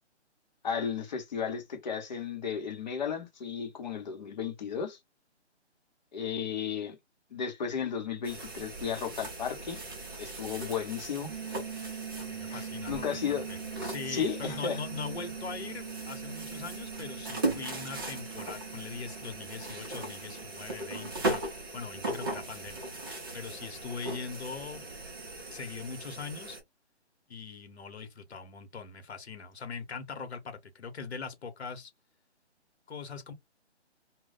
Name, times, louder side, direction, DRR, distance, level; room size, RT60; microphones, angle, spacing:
voice 1, 0.6-5.0 6.1-7.0 7.3-9.8 10.2-11.6 12.5-13.4 14.1-14.8, left 7 dB, 40° left, 0.9 m, -34 dB
sound 1, 8.2-26.6, right 2 dB, 20° right, 0.6 m, -39 dB
sound 2, 11.3-22.0, right 8 dB, 65° right, 0.6 m, -43 dB
voice 2, 12.2-22.8 23.3-25.1 25.5-26.6 27.3-31.9 32.9-33.3, left 5 dB, 65° left, 1.0 m, -41 dB
2.2 x 2.1 x 3.8 m
figure-of-eight pair, 155°, 34 cm